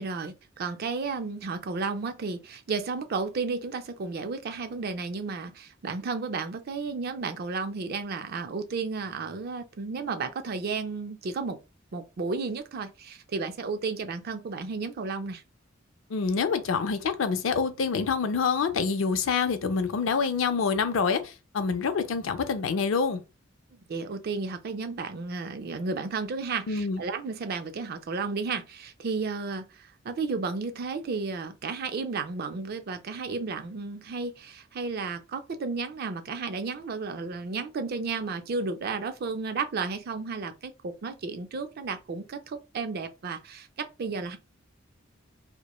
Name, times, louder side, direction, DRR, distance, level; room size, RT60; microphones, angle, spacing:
voice 1, 0.0-11.6 11.9-15.4 23.9-44.4, right 4 dB, 50° right, 0.4 m, -33 dB
voice 2, 16.1-23.2 26.7-27.0, left 5 dB, 80° left, 0.4 m, -26 dB
2.9 x 2.1 x 2.2 m
head